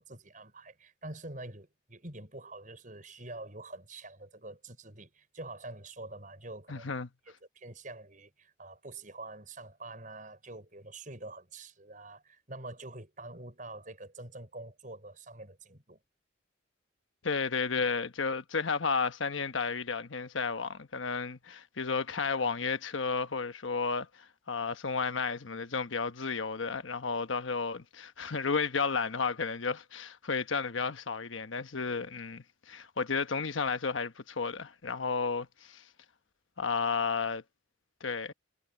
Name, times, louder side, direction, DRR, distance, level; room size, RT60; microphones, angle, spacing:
voice 1, 0.0-6.9 7.3-16.0, right 2 dB, 45° right, 6.2 m, -46 dB
voice 2, 6.7-7.1 17.2-35.8 36.6-37.4 38.0-38.3, left 5 dB, 85° left, 1.1 m, -32 dB
head